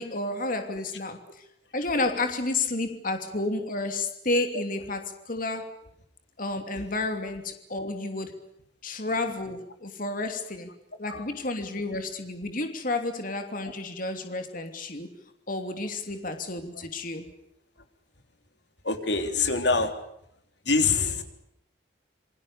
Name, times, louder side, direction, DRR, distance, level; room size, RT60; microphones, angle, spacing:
voice 1, 0.0-1.4 1.7-5.7 6.4-8.4 8.8-10.7 11.0-15.1 15.5-17.2, left 2 dB, 50° left, 6 dB, 2.9 m, -31 dB
voice 2, 18.8-19.9 20.6-21.2, left 4 dB, 70° left, 7 dB, 3.6 m, -25 dB
28.0 x 23.5 x 6.8 m, 0.76 s
head